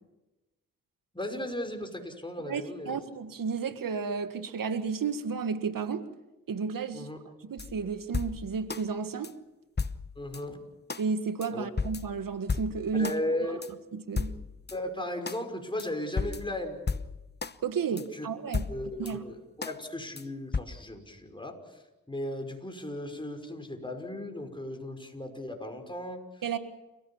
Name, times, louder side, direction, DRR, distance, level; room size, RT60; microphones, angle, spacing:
voice 1, 1.1-3.0 6.9-7.2 10.2-10.6 11.5-11.6 12.9-13.6 14.7-16.8 17.9-18.3 18.7-21.8 22.1-26.6, left 1 dB, 15° left, 4 dB, 5.5 m, -36 dB
voice 2, 2.5-6.0 6.5-7.1 7.4-9.3 11.0-13.1 13.5-13.6 13.9-14.3 17.6-18.7 19.0-19.2 26.4-26.6, right 5 dB, 75° right, 10 dB, 1.8 m, -32 dB
sound 1, 7.6-8.8 9.2-9.3 9.8-10.4 10.9-11.0 11.4-11.5 11.8-13.2 13.6-13.7 14.2-14.8 15.3-15.4 15.8-15.9 16.2-17.6 18.0-18.1 18.5-19.1 19.6-19.8 20.2-20.3 20.5-20.6, left 4 dB, 30° left, 1.0 m, -34 dB
29.5 x 16.0 x 7.2 m, 1.0 s
cardioid pair, 45°, 34 cm